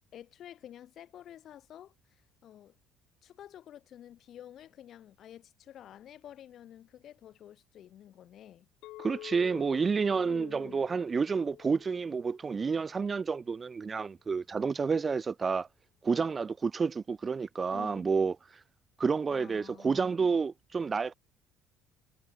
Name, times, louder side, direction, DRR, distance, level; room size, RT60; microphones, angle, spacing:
voice 1, 0.1-1.9 2.4-2.7 3.2-8.7 10.2-10.8 17.7-18.0 19.3-20.0, left 11 dB, 45° left, 5.7 m, -50 dB
Chink clink, 8.8-13.1, left 18 dB, 70° left, 7.2 m, -49 dB
voice 2, 9.0-15.7 16.0-18.3 19.0-21.1, right 5 dB, 25° right, 1.1 m, -29 dB
cardioid pair, 135°, 0 cm